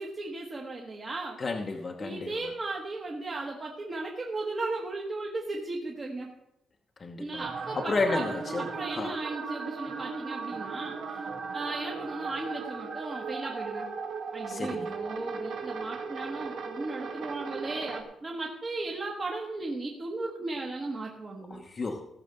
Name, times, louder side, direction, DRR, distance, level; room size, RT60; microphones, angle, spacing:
voice 1, 0.0-1.4 2.0-6.3 7.2-8.3 8.6-13.9 14.3-21.6, right 2 dB, 25° right, -1 dB, 1.4 m, -36 dB
voice 2, 1.4-2.4 7.0-7.4 7.7-9.1 14.5-14.9 21.5-22.1, left 3 dB, 30° left, 2 dB, 1.0 m, -32 dB
sound 1, 7.4-18.0, right 4 dB, 60° right, 1.9 m, -37 dB
15.5 x 6.5 x 6.7 m, 0.86 s
cardioid pair, 155°, 0 cm